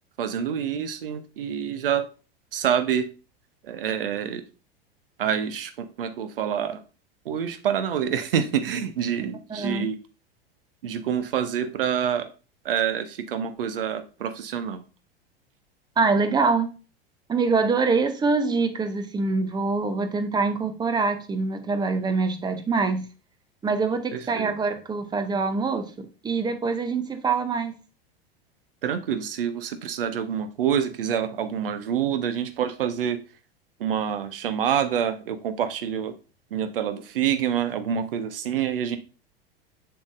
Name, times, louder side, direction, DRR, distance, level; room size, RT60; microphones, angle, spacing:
voice 1, 0.2-2.1 2.5-3.1 3.6-4.5 5.2-6.8 7.2-10.0 10.8-12.3 12.6-14.8 24.1-24.5 28.8-33.2 33.8-36.1 36.5-39.0, right 8 dB, 60° right, 0.9 m, -27 dB
voice 2, 9.5-9.9 16.0-16.7 17.3-23.1 23.6-27.7, right 4 dB, 15° right, 0.8 m, -24 dB
7.1 x 5.8 x 2.6 m
figure-of-eight pair, 85°, 31 cm